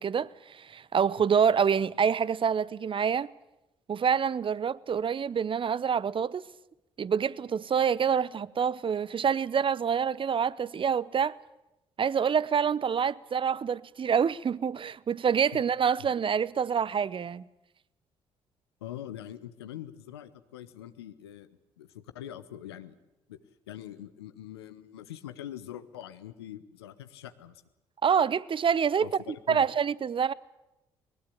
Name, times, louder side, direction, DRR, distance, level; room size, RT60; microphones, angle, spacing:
voice 1, 0.0-3.3 3.9-6.4 7.0-11.4 12.0-17.4 28.0-29.1 29.5-30.3, right 7 dB, 40° right, 0.8 m, -26 dB
voice 2, 18.8-23.0 23.3-23.4 23.7-27.6 29.0-29.6, left 11 dB, 90° left, 1.0 m, -43 dB
21.5 x 20.0 x 8.6 m
hypercardioid pair, 45°, 13 cm